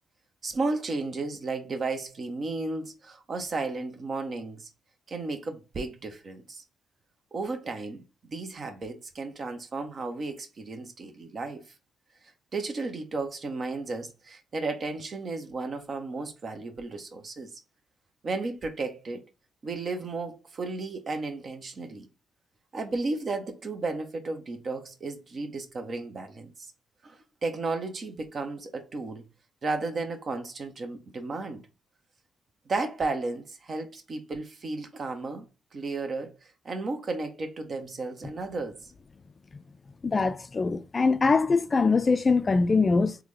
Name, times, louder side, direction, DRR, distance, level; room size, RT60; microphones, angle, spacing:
voice 1, 0.4-4.7 5.1-6.6 7.3-8.0 8.3-11.6 12.5-17.5 18.2-19.2 19.6-22.1 22.7-26.7 27.0-29.2 29.6-31.6 32.7-38.8, right 3 dB, 50° right, 0.9 m, -34 dB
voice 2, 40.0-43.2, left 4 dB, 40° left, 0.4 m, -23 dB
3.6 x 2.3 x 3.2 m
supercardioid pair, 50°, 0 cm